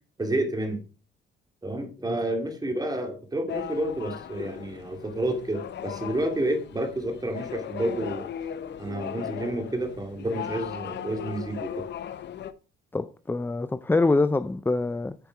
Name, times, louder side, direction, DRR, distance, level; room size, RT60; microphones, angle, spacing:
voice 1, 0.2-0.8 1.6-8.3 8.8-11.9, right 1 dB, 20° right, 2.5 m, -30 dB
sound 1, 3.5-12.5, left 10 dB, 60° left, 0.8 m, -38 dB
voice 2, 12.9-15.1, left 3 dB, 10° left, 0.5 m, -25 dB
9.2 x 5.3 x 4.7 m
cardioid pair, 90°, 20 cm